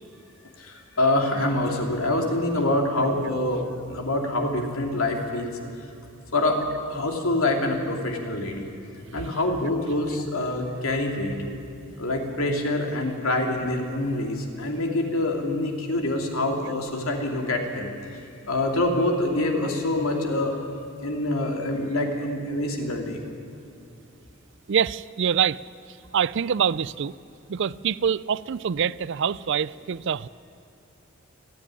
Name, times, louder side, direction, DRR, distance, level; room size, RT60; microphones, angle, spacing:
voice 1, 0.6-5.6 6.3-6.6 6.9-8.7 9.1-11.3 12.0-17.9 18.5-20.5 21.0-23.2, left 1 dB, 75° left, 2 dB, 3.0 m, -25 dB
voice 2, 24.7-25.6 26.1-27.1 27.5-30.3, right 7 dB, 60° right, 19 dB, 0.4 m, -25 dB
30.0 x 10.0 x 9.9 m, 2.6 s
head